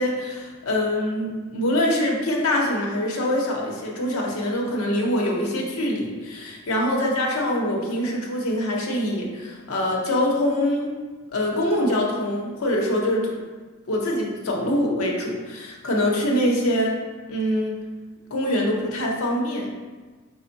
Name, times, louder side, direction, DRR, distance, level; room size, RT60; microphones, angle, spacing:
voice 1, 0.0-10.9 11.3-13.3 13.9-17.0 17.3-17.8 18.3-19.7, left 1 dB, 80° left, -1 dB, 0.7 m, -24 dB
4.3 x 2.0 x 3.9 m, 1.3 s
head